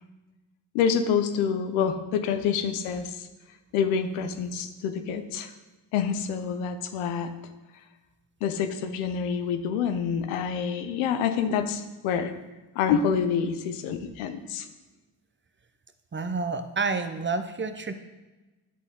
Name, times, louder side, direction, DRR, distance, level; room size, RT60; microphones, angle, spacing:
voice 1, 0.7-3.3 3.7-5.5 5.9-7.3 8.4-12.3 12.8-14.7, left 7 dB, 85° left, 9 dB, 0.7 m, -27 dB
voice 2, 16.1-17.9, right 4 dB, 25° right, 9 dB, 0.7 m, -29 dB
10.5 x 4.0 x 3.7 m, 1.1 s
hypercardioid pair, 45°, 49 cm